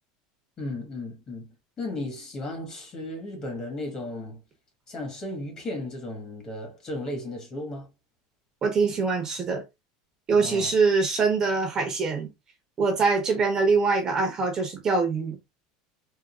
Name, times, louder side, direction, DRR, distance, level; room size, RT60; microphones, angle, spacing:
voice 1, 0.6-1.5 1.8-4.4 4.9-7.9 10.4-10.7, left 1 dB, 30° left, 1.5 m, -35 dB
voice 2, 8.6-9.6 10.3-12.3 12.8-15.4, right 4 dB, 25° right, 0.9 m, -23 dB
3.7 x 2.5 x 2.4 m
supercardioid pair, 150°, 2 cm